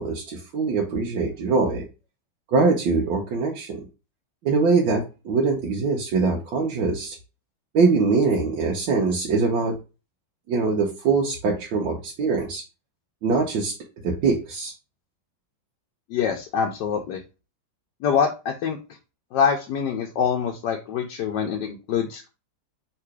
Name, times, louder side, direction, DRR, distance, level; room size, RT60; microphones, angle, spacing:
voice 1, 0.0-1.8 2.5-3.8 4.4-7.2 7.7-9.8 10.5-12.6 13.2-13.7 14.0-14.7, right 4 dB, 75° right, -2 dB, 1.5 m, -23 dB
voice 2, 16.1-17.2 18.0-18.8 19.3-22.3, left 7 dB, 70° left, 1 dB, 1.2 m, -25 dB
3.8 x 2.9 x 4.7 m, 0.31 s
omnidirectional pair, 2.2 m